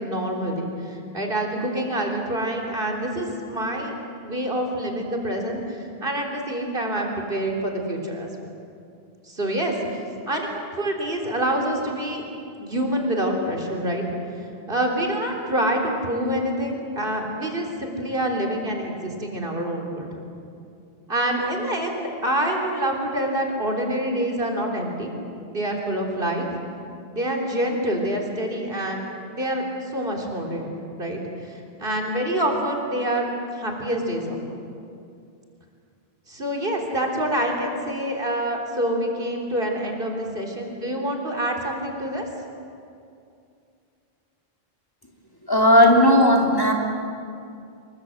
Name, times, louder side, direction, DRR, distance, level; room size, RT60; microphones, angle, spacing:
voice 1, 0.0-3.9 4.2-8.5 9.3-9.7 10.3-12.2 12.6-14.0 14.7-20.1 21.1-25.1 25.5-26.6 27.1-33.3 33.6-34.6 36.3-42.3, right 1 dB, 60° right, 1 dB, 3.9 m, -26 dB
voice 2, 45.5-46.7, left 1 dB, 20° left, -1 dB, 3.3 m, -15 dB
26.0 x 23.0 x 7.9 m, 2.5 s
omnidirectional pair, 1.0 m